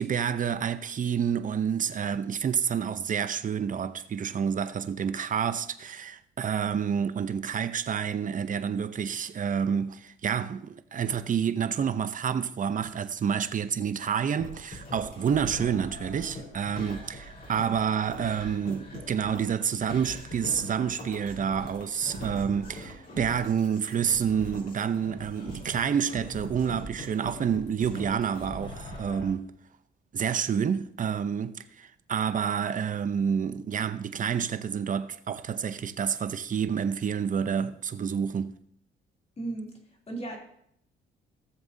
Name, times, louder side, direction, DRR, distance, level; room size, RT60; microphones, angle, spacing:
voice 1, 0.0-29.5 30.1-38.6, right 7 dB, 40° right, 0.7 m, -29 dB
sound 1, 14.4-29.3, left 1 dB, 50° left, 4.3 m, -42 dB
voice 2, 39.4-40.4, right 2 dB, 35° left, 3.0 m, -36 dB
17.0 x 7.2 x 2.7 m
cardioid pair, 90°, 20 cm